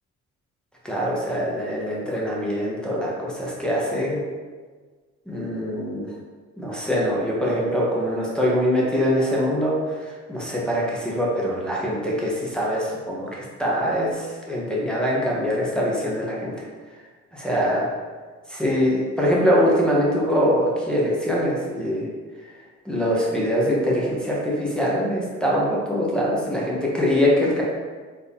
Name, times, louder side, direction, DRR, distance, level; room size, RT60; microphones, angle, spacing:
voice 1, 0.8-4.2 5.3-6.1 6.6-9.7 10.0-16.5 17.3-17.9 18.5-22.0 22.8-27.6, equal, 5° left, -5 dB, 1.0 m, -23 dB
4.3 x 2.8 x 3.6 m, 1.4 s
cardioid pair, 90°, 30 cm